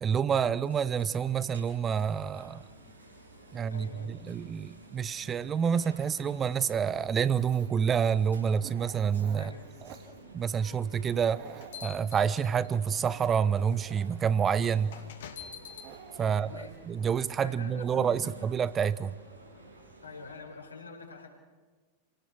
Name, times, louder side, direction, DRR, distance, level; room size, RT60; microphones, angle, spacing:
voice 1, 0.0-2.6 3.5-9.5 10.3-11.4 11.8-15.0 16.2-19.2, right 7 dB, 25° right, 18 dB, 0.8 m, -28 dB
sound 1, 0.6-20.4, right 2 dB, 90° right, 7.6 m, -53 dB
voice 2, 3.7-4.1 9.4-9.8 16.2-16.7 17.4-18.4 20.0-21.3, left 4 dB, 80° left, 2 dB, 5.0 m, -45 dB
Dog, 7.0-17.2, right 8 dB, 40° right, 2.3 m, -52 dB
sound 2, 11.2-12.9 13.7-13.9 14.9-15.9, left 8 dB, 60° left, 2.6 m, -45 dB
28.5 x 18.5 x 6.1 m, 1.4 s
figure-of-eight pair, 90°, 0 cm